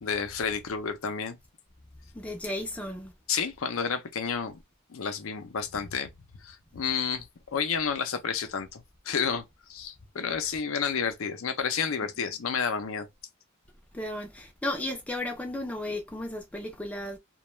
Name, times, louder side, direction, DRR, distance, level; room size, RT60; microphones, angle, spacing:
voice 1, 0.0-1.4 3.3-4.6 4.9-6.1 6.4-9.4 9.7-13.1, left 6 dB, 75° left, 0.5 m, -30 dB
voice 2, 2.1-3.1 13.9-17.2, left 1 dB, 5° left, 0.5 m, -34 dB
2.3 x 2.1 x 3.0 m
head